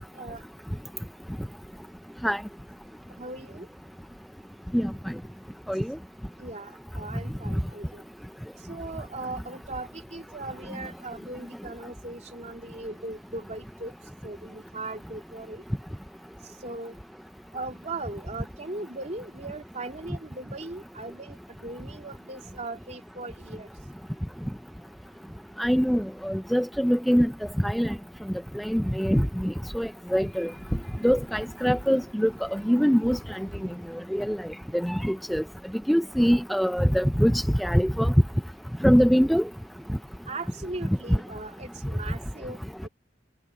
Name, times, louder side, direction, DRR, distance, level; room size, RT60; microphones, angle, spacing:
voice 1, 3.2-3.7 6.4-8.0 8.7-13.9 14.2-15.6 16.6-17.0 17.5-23.7 40.3-42.9, right 2 dB, 40° right, 3.1 m, -38 dB
voice 2, 25.6-27.3 27.6-27.9 28.6-30.5 31.0-33.4 34.1-34.4 34.8-35.4 35.9-38.1 38.8-39.4, equal, ahead, 0.4 m, -23 dB
head